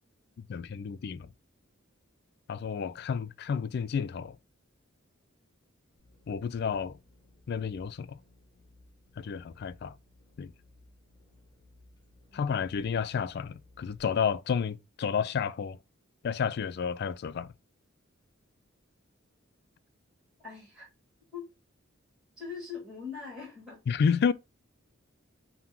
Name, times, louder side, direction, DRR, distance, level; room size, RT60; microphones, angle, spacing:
voice 1, 0.4-1.3 2.5-4.4 6.3-7.0 7.5-8.2 9.2-9.9 10.4-10.5 12.3-15.8 16.2-17.5 23.9-24.3, left 6 dB, 55° left, 0.3 m, -31 dB
sound 1, 5.9-14.0, left 1 dB, 20° left, 0.8 m, -60 dB
voice 2, 12.3-12.6 20.4-20.9 21.3-21.5 22.4-23.8, left 6 dB, 5° right, 1.8 m, -42 dB
5.9 x 2.2 x 3.6 m
head